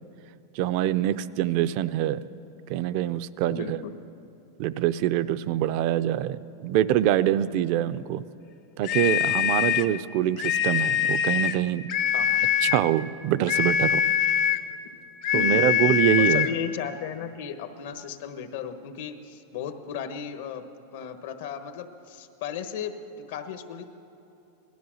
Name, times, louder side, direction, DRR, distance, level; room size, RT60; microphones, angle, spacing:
voice 1, 0.5-2.2 2.7-3.8 4.6-8.2 8.8-11.9 12.6-14.0 15.3-16.5, right 12 dB, 50° right, 15 dB, 0.5 m, -25 dB
voice 2, 3.5-3.9 12.1-12.4 15.3-15.5 16.2-20.6 20.9-23.8, left 7 dB, 65° left, 8 dB, 1.1 m, -35 dB
sound 1, 8.8-9.9 10.4-11.6 11.9-12.9 13.5-14.7 15.2-16.6, left 9 dB, 45° left, 0.6 m, -24 dB
18.0 x 12.5 x 6.3 m, 2.8 s
supercardioid pair, 150°, 0 cm